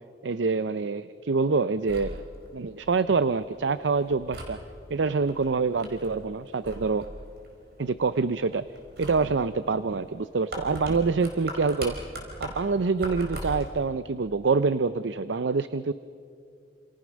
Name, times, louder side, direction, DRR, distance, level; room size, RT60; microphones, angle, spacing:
voice 1, 0.2-2.2 2.5-4.6 4.9-7.1 7.8-8.6 9.0-12.0 12.4-15.9, right 4 dB, 85° right, 14 dB, 0.6 m, -26 dB
sound 1, 1.7-13.8, equal, 65° right, 4.7 m, -41 dB
28.0 x 27.5 x 6.3 m, 2.4 s
head